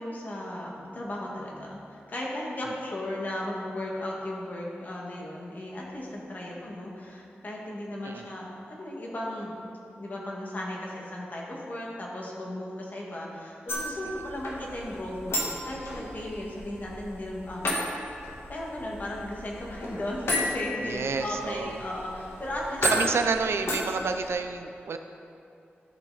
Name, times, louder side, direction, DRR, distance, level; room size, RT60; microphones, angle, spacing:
voice 1, 0.0-9.6 10.0-17.7 18.5-22.8, left 1 dB, 45° left, -3 dB, 1.9 m, -36 dB
sound 1, 13.7-24.3, equal, 80° left, 1.7 m, -33 dB
voice 2, 20.8-21.8 22.8-25.0, right 4 dB, 90° right, 7 dB, 0.5 m, -29 dB
13.5 x 6.0 x 4.1 m, 2.7 s
wide cardioid pair, 125°, 4 cm